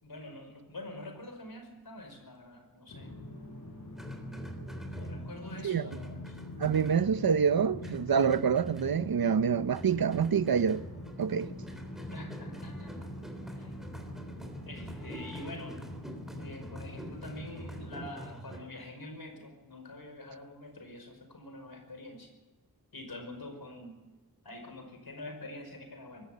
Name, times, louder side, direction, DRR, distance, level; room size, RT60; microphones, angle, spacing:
voice 1, 0.0-3.1 4.9-6.4 12.1-12.9 13.5-13.7 14.7-15.8 16.4-22.3 22.9-24.0 24.4-26.3, left 1 dB, 85° left, 5.4 m, -45 dB
sound 1, 2.9-18.1, left 1 dB, 55° left, 7.8 m, -44 dB
sound 2, 4.0-5.6 5.9-7.5 7.8-9.4 9.7-18.6, right 1 dB, ahead, 3.4 m, -46 dB
voice 2, 6.6-10.8 11.2-11.5, right 7 dB, 75° right, 0.8 m, -26 dB
24.0 x 13.5 x 8.5 m
wide cardioid pair, 85°, 36 cm